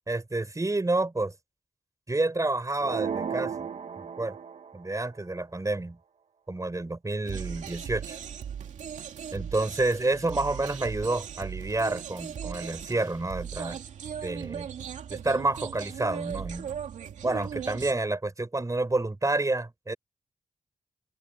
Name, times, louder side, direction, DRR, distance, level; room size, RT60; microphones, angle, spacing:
voice 1, 0.1-1.3 2.1-4.4 4.7-6.0 6.5-8.2 9.3-13.8 14.2-14.7 15.1-16.8 17.2-20.0, right 2 dB, 25° right, 4.2 m, -29 dB
sound 1, 2.8-4.9, right 6 dB, 65° right, 1.6 m, -34 dB
sound 2, 7.2-17.9, right 8 dB, 85° right, 2.6 m, -38 dB
open air
supercardioid pair, 45°, 12 cm